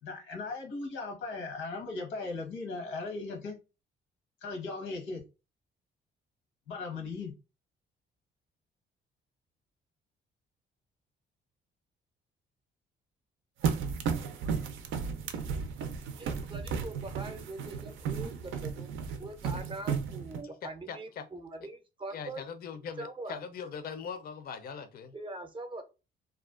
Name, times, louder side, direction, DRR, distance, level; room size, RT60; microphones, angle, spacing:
voice 1, 0.0-3.6 4.4-5.2 6.7-7.3, left 3 dB, 90° left, 1.0 m, -38 dB
sound 1, 13.6-20.4, right 6 dB, 80° right, 0.4 m, -34 dB
voice 2, 16.1-18.9 19.2-22.4 23.0-23.4 25.1-25.8, right 2 dB, 25° right, 0.5 m, -42 dB
voice 3, 20.6-21.3 21.6-21.7 22.1-25.1, left 6 dB, 50° left, 0.4 m, -41 dB
2.4 x 2.3 x 2.3 m
cardioid pair, 90°, 20 cm